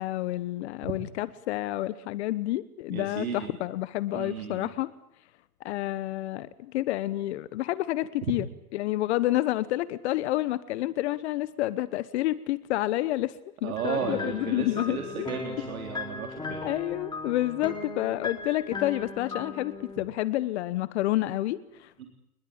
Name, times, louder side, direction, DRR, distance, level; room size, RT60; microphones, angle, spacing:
voice 1, 0.0-4.9 5.6-8.5 8.7-13.4 13.6-15.3 16.6-21.9, left 15 dB, 50° left, 16 dB, 1.2 m, -29 dB
voice 2, 2.9-3.5 4.1-4.7 8.3-8.4 13.6-16.6 22.0-22.1, right 7 dB, 70° right, 3 dB, 3.9 m, -34 dB
sound 1, 13.8-20.0, left 3 dB, 10° left, 3.2 m, -38 dB
25.5 x 21.0 x 8.7 m, 0.79 s
hypercardioid pair, 130°, 44 cm